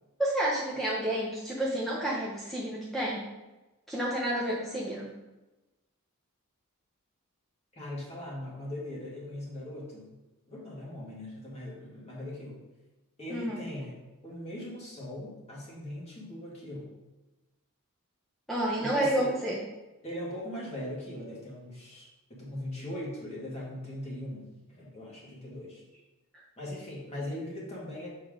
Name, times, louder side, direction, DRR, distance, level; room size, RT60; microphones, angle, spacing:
voice 1, 0.2-3.2 3.9-5.1 13.3-13.6 18.5-19.6, right 1 dB, ahead, -6 dB, 0.9 m, -30 dB
voice 2, 7.7-10.2 10.5-12.6 13.2-14.0 14.2-16.9 18.8-19.3 20.0-25.8 26.6-28.1, left 1 dB, 30° left, -5 dB, 2.2 m, -40 dB
6.8 x 4.7 x 3.8 m, 1.1 s
head